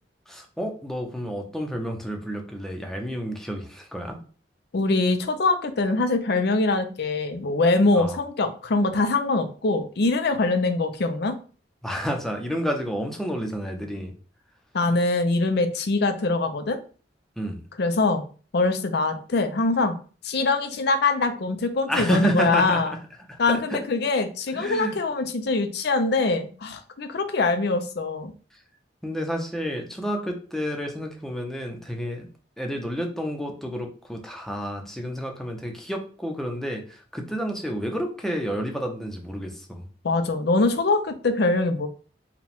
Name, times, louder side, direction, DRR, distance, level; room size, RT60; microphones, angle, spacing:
voice 1, 0.3-4.2 8.0-8.2 11.8-14.1 17.4-17.6 21.9-23.0 23.3-23.8 24.5-25.0 29.0-32.3 32.6-39.9, equal, ahead, 2 dB, 0.7 m, -30 dB
voice 2, 4.7-11.4 14.7-16.8 17.8-18.2 18.5-19.9 20.2-22.9 23.4-28.3 40.0-41.9, left 3 dB, 65° left, 8 dB, 0.6 m, -23 dB
4.8 x 2.3 x 3.5 m, 0.40 s
head